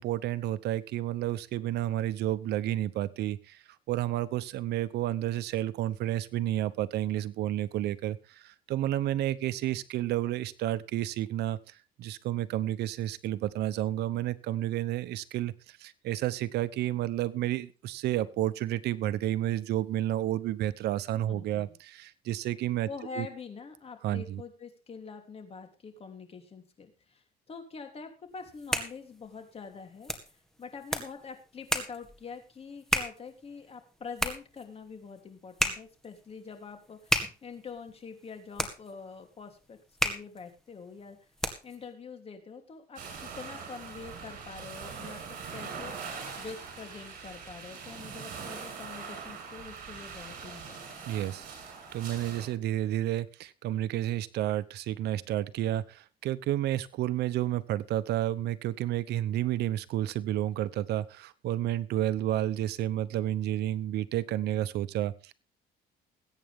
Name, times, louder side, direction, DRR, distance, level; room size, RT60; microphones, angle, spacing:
voice 1, 0.0-3.6 3.9-8.2 8.4-11.6 12.0-15.5 15.8-22.9 23.2-23.3 24.0-24.4 51.1-51.4 51.9-65.3, right 13 dB, 75° right, 15 dB, 0.9 m, -31 dB
voice 2, 21.3-21.8 22.9-39.8 40.0-41.2 41.6-51.1, left 5 dB, 35° left, 6 dB, 3.2 m, -45 dB
sound 1, 28.4-41.9, equal, 5° left, 2.0 m, -35 dB
sound 2, 43.0-52.5, right 5 dB, 55° right, 6.8 m, -42 dB
21.0 x 9.1 x 3.6 m, 0.32 s
cardioid pair, 110°, 17 cm